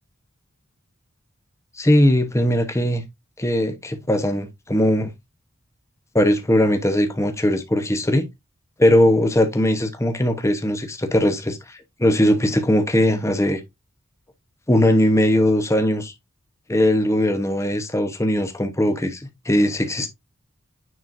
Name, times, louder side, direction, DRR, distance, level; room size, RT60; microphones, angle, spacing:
voice 1, 1.8-3.0 3.4-5.1 6.1-8.3 8.8-13.6 14.7-16.1 16.7-20.1, left 1 dB, 15° left, 1.0 m, -19 dB
9.3 x 4.3 x 2.6 m
head